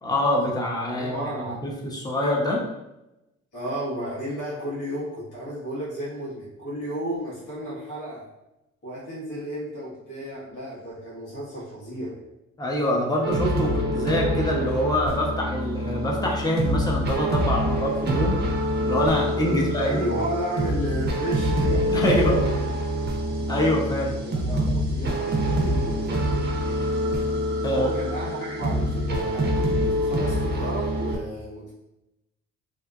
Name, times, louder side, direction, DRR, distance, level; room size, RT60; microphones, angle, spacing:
voice 1, 0.0-1.1 1.6-2.6 12.6-18.4 18.8-20.1 21.9-22.4 23.5-24.2 27.6-27.9, left 1 dB, 15° left, -1 dB, 0.6 m, -25 dB
voice 2, 1.0-1.6 3.5-8.3 8.8-12.2 19.5-22.7 24.1-26.1 27.7-31.7, right 1 dB, 80° left, -7 dB, 1.4 m, -33 dB
sound 1, 13.2-31.2, equal, 35° right, 0.5 m, -25 dB
2.7 x 2.4 x 2.3 m, 0.93 s
cardioid pair, 90°, 30 cm